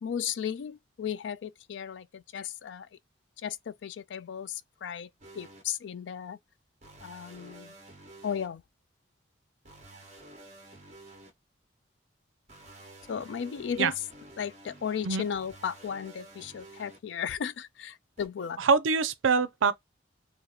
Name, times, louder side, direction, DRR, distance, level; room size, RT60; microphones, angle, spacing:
voice 1, 0.0-2.9 3.4-5.1 5.3-6.4 7.0-7.7 8.2-8.6 13.1-13.9 14.4-18.6, left 7 dB, 70° left, 0.3 m, -35 dB
sound 1, 5.2-5.6 6.8-8.5 9.6-11.3 12.5-17.0 18.2-18.3, right 1 dB, 35° right, 1.0 m, -51 dB
voice 2, 18.6-19.7, right 5 dB, 90° right, 0.5 m, -24 dB
2.8 x 2.5 x 3.9 m
head